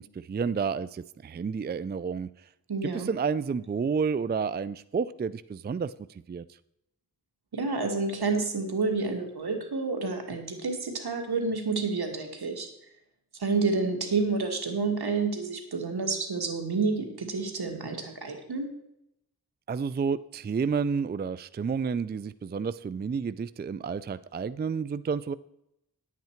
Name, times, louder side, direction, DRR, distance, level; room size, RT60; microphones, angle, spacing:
voice 1, 0.0-2.3 2.8-5.9 6.3-6.5 19.7-25.3, right 5 dB, 30° right, 15 dB, 0.4 m, -30 dB
voice 2, 2.7-3.1 7.5-12.7 13.4-18.7, right 4 dB, 85° right, 3 dB, 1.9 m, -29 dB
10.5 x 8.3 x 4.5 m, 0.82 s
wide cardioid pair, 50°, 37 cm